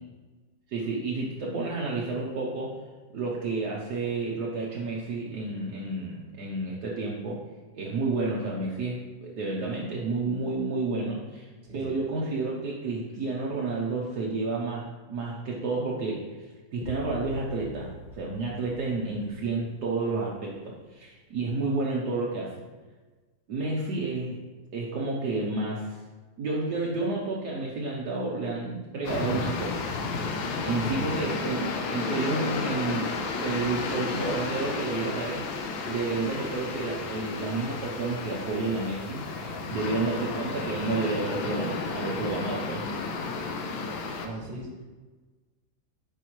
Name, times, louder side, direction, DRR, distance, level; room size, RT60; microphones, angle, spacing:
voice 1, 0.7-2.8 3.1-7.4 7.7-11.5 11.7-16.2 16.7-22.6 23.5-24.4 24.7-26.0 26.4-29.8 30.6-33.1 33.4-35.5 35.8-42.8, right 3 dB, 65° right, -3 dB, 1.3 m, -30 dB
voice 2, 11.6-11.9 30.8-31.3 39.4-39.8 44.1-44.8, right 1 dB, 30° right, -1 dB, 1.4 m, -41 dB
sound 1, 16.8-20.8, left 2 dB, 70° left, 1.4 m, -44 dB
sound 2, 29.0-44.3, left 4 dB, 90° left, 1.5 m, -32 dB
8.5 x 5.0 x 3.1 m, 1.3 s
omnidirectional pair, 2.1 m